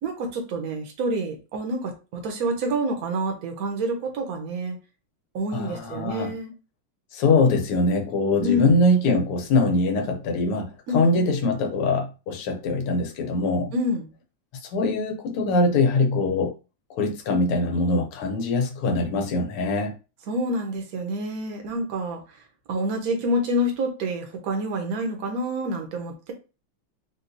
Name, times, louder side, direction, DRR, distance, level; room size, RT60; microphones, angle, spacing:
voice 1, 0.0-4.8 5.3-6.5 8.4-8.7 10.9-11.2 13.7-14.1 20.3-22.2 22.7-26.3, equal, 60° right, 1.0 m, -27 dB
voice 2, 5.5-6.3 7.1-13.7 14.7-16.5 16.9-19.9, left 2 dB, 90° left, 1.7 m, -23 dB
4.3 x 2.3 x 2.6 m
omnidirectional pair, 2.4 m